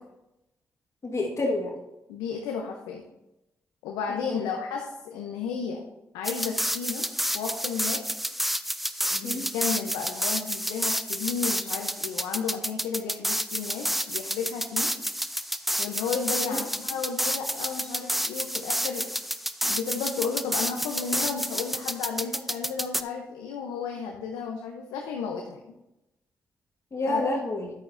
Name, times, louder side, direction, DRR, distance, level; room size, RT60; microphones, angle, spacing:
voice 1, 1.0-1.7 4.3-4.5 9.2-9.4 16.4-16.6 26.9-27.7, left 2 dB, 45° left, 1 dB, 1.5 m, -28 dB
voice 2, 2.1-3.0 3.8-5.9 6.1-7.1 7.3-8.0 9.1-14.9 15.8-19.1 19.6-25.6 27.0-27.2, left 6 dB, 90° left, 2 dB, 0.7 m, -33 dB
sound 1, 6.2-23.0, equal, ahead, 0.5 m, -30 dB
10.5 x 8.7 x 2.6 m, 0.95 s
hypercardioid pair, 40°, 7 cm